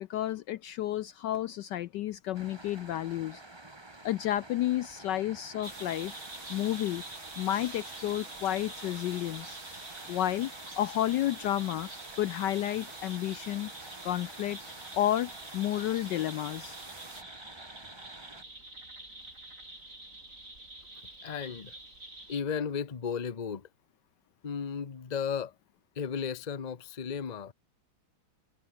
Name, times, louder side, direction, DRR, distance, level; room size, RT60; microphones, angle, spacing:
voice 1, 0.0-3.4 4.0-6.2 6.5-7.0 7.4-9.6 10.1-11.9 12.2-13.7 14.0-14.6 15.0-16.8, left 13 dB, 70° left, 1.1 m, -31 dB
sound 1, 2.3-18.4, right 2 dB, 15° right, 1.6 m, -50 dB
sound 2, 5.6-22.4, right 2 dB, 40° right, 7.2 m, -47 dB
sound 3, 5.6-17.2, right 3 dB, 80° right, 6.4 m, -48 dB
voice 2, 21.2-21.7 22.3-23.7 24.4-25.5 26.0-27.5, left 6 dB, 30° left, 0.8 m, -34 dB
omnidirectional pair, 2.2 m